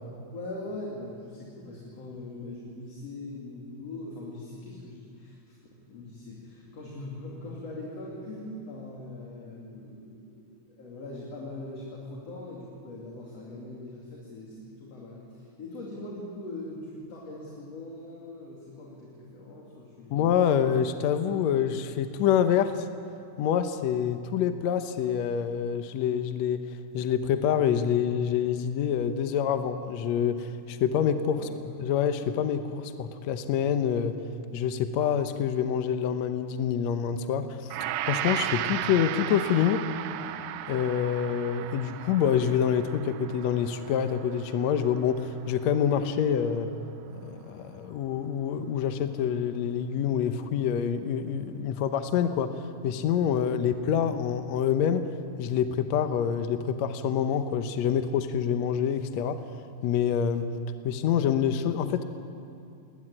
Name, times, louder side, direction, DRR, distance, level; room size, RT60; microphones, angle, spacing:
voice 1, 0.3-5.6 5.9-20.2 31.3-31.6, left 2 dB, 55° left, -3 dB, 3.7 m, -41 dB
voice 2, 20.1-22.9 23.4-26.6 26.9-31.4 31.8-34.1 34.5-37.7 38.1-39.9 40.7-46.7 47.2-55.1 55.4-59.4 59.8-60.5 60.8-62.0, left 8 dB, 70° left, 8 dB, 2.0 m, -26 dB
Gong, 37.7-46.1 46.5-46.6, right 12 dB, 90° right, 2.3 m, -36 dB
20.0 x 19.0 x 9.9 m, 2.4 s
omnidirectional pair, 3.5 m